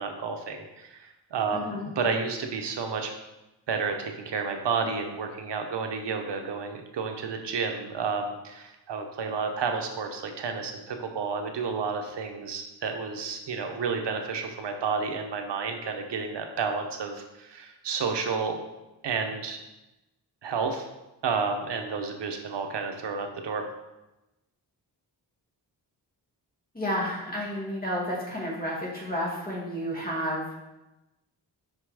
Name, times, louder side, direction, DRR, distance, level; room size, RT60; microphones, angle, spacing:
voice 1, 0.0-3.1 3.7-18.6 19.0-19.6 20.4-20.9 21.2-23.6, right 5 dB, 85° right, 4 dB, 0.9 m, -31 dB
voice 2, 1.5-1.9 26.7-30.5, equal, 20° left, -5 dB, 2.3 m, -31 dB
5.7 x 5.5 x 4.8 m, 0.98 s
wide cardioid pair, 130°, 41 cm